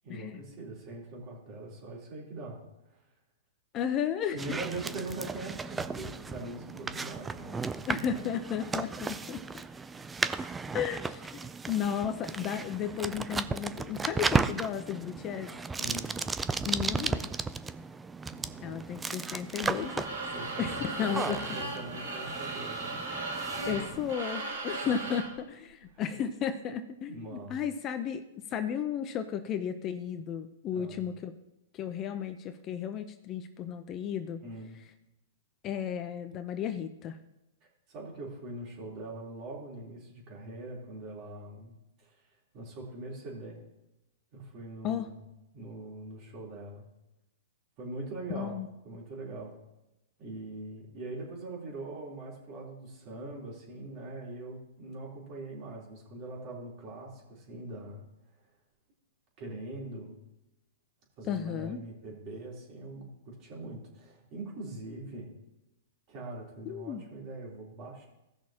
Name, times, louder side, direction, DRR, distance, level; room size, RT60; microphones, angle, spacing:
voice 1, 0.0-2.6 2.9-3.0 4.3-8.1 15.8-16.2 18.3-18.9 20.3-23.8 25.0-25.1 25.9-26.1 27.1-27.6 30.7-31.0 34.4-34.8 37.9-41.7 42.0-42.2 42.5-43.6 44.3-45.2 45.5-46.9 47.8-48.6 48.8-49.5 50.2-58.0 59.4-60.1 61.2-65.3 66.1-68.1, right 2 dB, 40° right, -3 dB, 3.6 m, -42 dB
voice 2, 3.7-4.6 7.9-9.4 10.7-11.4 11.7-15.5 16.6-17.3 18.6-20.1 20.6-21.7 23.7-28.2 28.5-31.3 31.7-34.4 35.6-37.2 44.8-45.1 48.3-48.7 61.2-61.8 66.7-67.0, left 8 dB, 30° left, 9 dB, 0.7 m, -34 dB
sound 1, 4.4-24.2, right 4 dB, 10° right, 0.4 m, -35 dB
sound 2, 19.6-25.4, right 2 dB, 85° right, 3.9 m, -37 dB
16.5 x 6.3 x 2.9 m, 0.94 s
hypercardioid pair, 125°, 0 cm